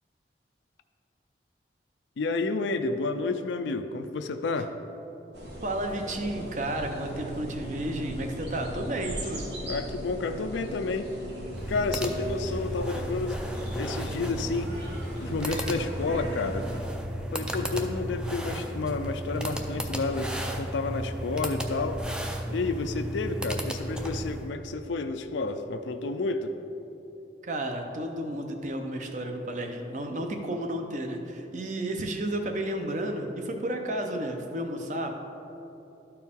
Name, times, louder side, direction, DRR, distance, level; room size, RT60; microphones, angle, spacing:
voice 1, 2.2-4.7 9.6-11.1 11.7-13.4 13.8-14.7 15.2-16.7 17.3-22.0 22.5-26.5, left 3 dB, 85° left, 7 dB, 0.4 m, -30 dB
sound 1, 5.3-16.8, right 1 dB, 70° right, 1.4 m, -39 dB
voice 2, 5.6-9.4 27.4-35.1, right 1 dB, 40° right, 4 dB, 0.7 m, -32 dB
sound 2, 11.5-24.5, equal, 5° right, 0.4 m, -34 dB
12.5 x 4.5 x 3.6 m, 3.0 s
head